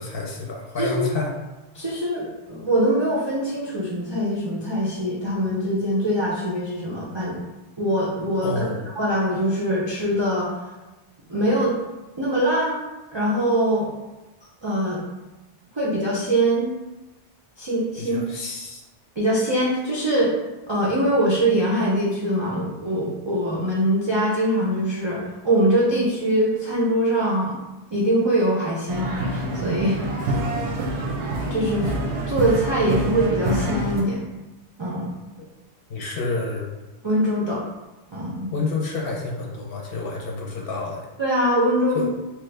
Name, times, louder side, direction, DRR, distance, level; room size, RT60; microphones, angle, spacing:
voice 1, 0.0-1.3 8.4-8.9 18.0-18.8 35.9-36.7 38.5-41.0 41.9-42.1, left 3 dB, 60° left, -1 dB, 0.7 m, -29 dB
voice 2, 0.8-1.1 1.7-7.4 7.8-8.7 9.0-10.5 11.3-11.7 12.2-12.7 13.1-13.9 14.6-15.0 15.7-16.7 17.6-18.2 19.2-20.3 20.7-27.6 27.9-30.3 31.5-31.9 32.3-34.2 34.8-35.1 37.0-37.6 38.1-38.5 41.2-42.1, right 1 dB, 45° right, -7 dB, 0.3 m, -23 dB
sound 1, 28.9-34.0, right 1 dB, 90° right, 0.9 m, -26 dB
3.0 x 2.2 x 3.2 m, 1.1 s
omnidirectional pair, 1.2 m